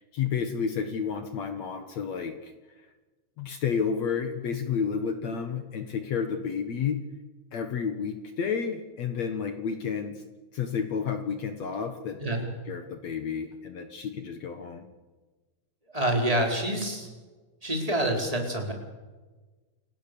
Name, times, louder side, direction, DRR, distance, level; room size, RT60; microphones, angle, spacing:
voice 1, 0.0-2.5 3.4-7.0 7.5-10.2 10.5-12.2 12.7-14.9, left 6 dB, 55° left, 7 dB, 2.2 m, -31 dB
voice 2, 15.9-17.1 17.6-18.7, right 1 dB, 10° right, 2 dB, 4.3 m, -27 dB
29.0 x 18.0 x 7.0 m, 1.3 s
omnidirectional pair, 4.4 m